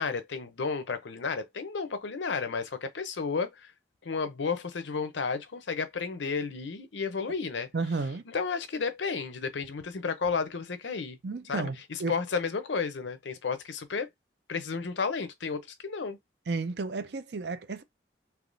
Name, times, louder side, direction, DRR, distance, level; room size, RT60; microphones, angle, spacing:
voice 1, 0.0-3.7 4.0-7.7 8.3-11.2 11.5-14.1 14.5-16.2, left 5 dB, 85° left, 0.6 m, -32 dB
voice 2, 7.7-8.2 11.2-12.2 16.5-17.8, right 3 dB, 65° right, 0.5 m, -32 dB
3.5 x 2.8 x 2.6 m
head